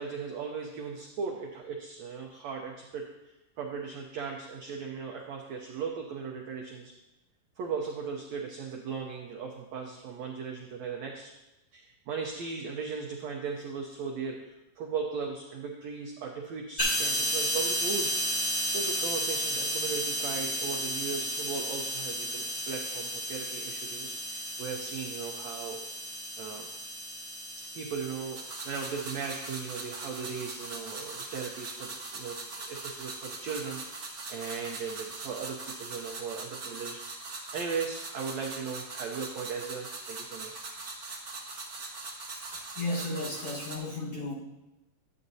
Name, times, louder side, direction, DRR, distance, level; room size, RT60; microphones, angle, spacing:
voice 1, 0.0-6.9 7.6-11.3 11.7-18.1 18.7-25.8 26.4-26.7 27.6-40.5, right 5 dB, 80° right, 0 dB, 1.6 m, -37 dB
sound 1, 16.8-36.1, equal, 15° left, 3.7 m, -35 dB
sound 2, 28.3-43.8, right 3 dB, 55° right, 1.2 m, -41 dB
voice 2, 42.5-44.3, left 2 dB, 50° left, -6 dB, 2.2 m, -34 dB
11.0 x 8.7 x 2.7 m, 0.99 s
omnidirectional pair, 4.0 m